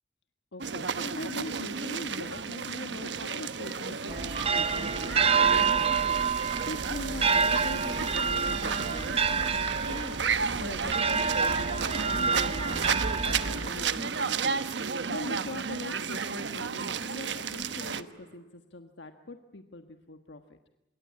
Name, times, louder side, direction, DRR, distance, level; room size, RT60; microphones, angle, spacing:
voice 1, 0.5-6.1 6.7-10.2 10.6-11.8 12.1-12.8 13.2-14.6 15.1-20.4, left 2 dB, 90° left, 6 dB, 1.4 m, -42 dB
sound 1, 0.6-18.0, right 5 dB, 85° right, 1.1 m, -33 dB
sound 2, 4.1-14.0, right 5 dB, 35° right, 0.9 m, -28 dB
the view from a distant giant, 12.7-18.4, equal, 60° right, 5.4 m, -56 dB
26.5 x 23.5 x 8.5 m, 0.95 s
head